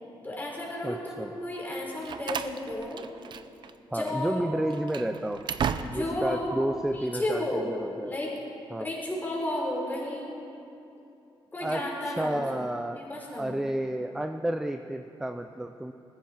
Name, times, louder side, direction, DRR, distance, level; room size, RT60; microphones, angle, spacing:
voice 1, 0.2-3.0 3.9-4.5 5.8-6.5 6.9-7.7 8.0-8.3 8.8-10.3 11.5-12.4 12.9-13.5, left 1 dB, 20° left, -3 dB, 4.6 m, -33 dB
voice 2, 0.8-1.3 3.9-5.4 5.9-8.1 8.7-8.9 11.6-11.8 12.1-13.0 13.4-15.9, right 1 dB, 5° right, 7 dB, 0.5 m, -31 dB
Slam, 1.7-3.7 4.0-4.2 4.7-6.3, right 7 dB, 55° right, 0.6 m, -35 dB
20.0 x 15.0 x 4.6 m, 2.8 s
cardioid pair, 115°, 9 cm